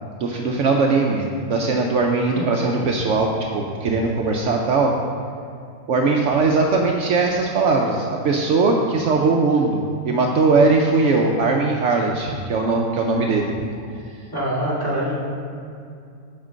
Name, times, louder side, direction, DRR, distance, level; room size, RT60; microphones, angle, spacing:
voice 1, 0.2-4.9 5.9-13.5, right 3 dB, 65° right, 1 dB, 0.9 m, -20 dB
voice 2, 14.3-15.2, equal, 15° left, -7 dB, 2.0 m, -24 dB
7.3 x 4.5 x 6.2 m, 2.4 s
omnidirectional pair, 1.5 m